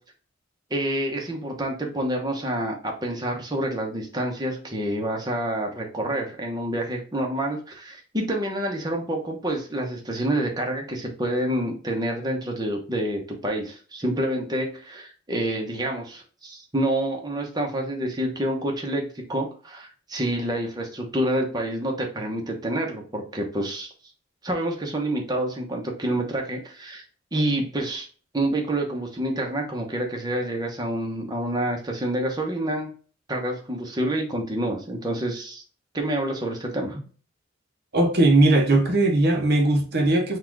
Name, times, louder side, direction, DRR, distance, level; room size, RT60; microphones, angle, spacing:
voice 1, 0.7-23.9 24.4-27.0 27.3-28.1 28.3-32.9 33.3-35.6 35.9-37.0, right 1 dB, 20° right, 0.9 m, -28 dB
voice 2, 37.9-40.4, right 2 dB, 50° right, 0.7 m, -19 dB
4.0 x 2.4 x 4.5 m
head